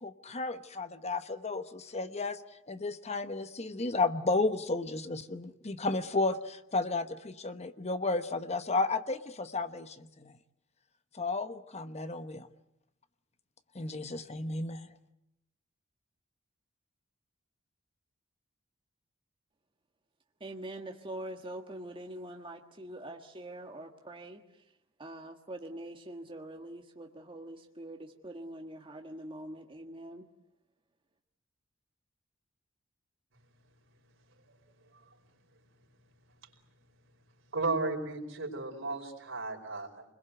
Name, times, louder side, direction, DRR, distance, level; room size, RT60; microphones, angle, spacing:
voice 1, 0.0-2.4 2.7-10.3 11.1-12.5 13.7-14.9, left 3 dB, 35° left, 10 dB, 1.1 m, -33 dB
voice 2, 20.4-24.4 25.0-30.3, right 1 dB, 25° right, 3 dB, 1.6 m, -44 dB
voice 3, 37.5-40.0, right 3 dB, 70° right, 2 dB, 4.8 m, -34 dB
28.5 x 21.5 x 8.0 m, 0.82 s
head